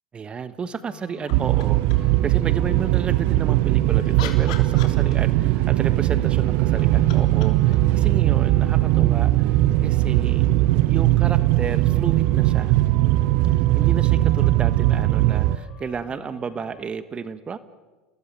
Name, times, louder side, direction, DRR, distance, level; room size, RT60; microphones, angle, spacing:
voice 1, 0.1-10.5 10.9-12.8 13.5-17.6, right 6 dB, 25° right, 14 dB, 1.3 m, -32 dB
sound 1, 0.9-16.8, left 6 dB, 40° left, 7.4 m, -47 dB
sound 2, 1.3-2.2 3.6-5.5 6.6-9.2 11.2-11.3, left 10 dB, 65° left, 3.3 m, -41 dB
sound 3, 1.3-15.6, right 16 dB, 55° right, 0.8 m, -19 dB
29.5 x 19.5 x 9.0 m, 1.3 s
hypercardioid pair, 80°, 4 cm